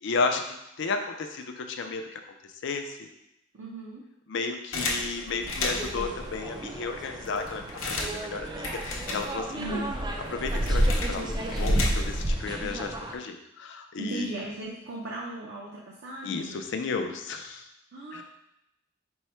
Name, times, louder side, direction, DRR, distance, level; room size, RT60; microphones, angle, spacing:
voice 1, 0.0-3.1 4.3-9.8 10.3-14.3 16.2-17.6 18.1-18.2, left 4 dB, 60° left, 5 dB, 0.4 m, -33 dB
voice 2, 3.5-4.0 9.5-9.9 14.0-16.6 17.9-18.2, right 2 dB, 60° right, -4 dB, 0.6 m, -37 dB
sound 1, 4.7-6.1 6.7-6.8 7.0-9.7 9.9-12.3, left 2 dB, 90° left, 0.7 m, -34 dB
sound 2, 5.4-13.2, right 1 dB, 20° right, 0.3 m, -30 dB
4.5 x 2.1 x 4.3 m, 0.82 s
head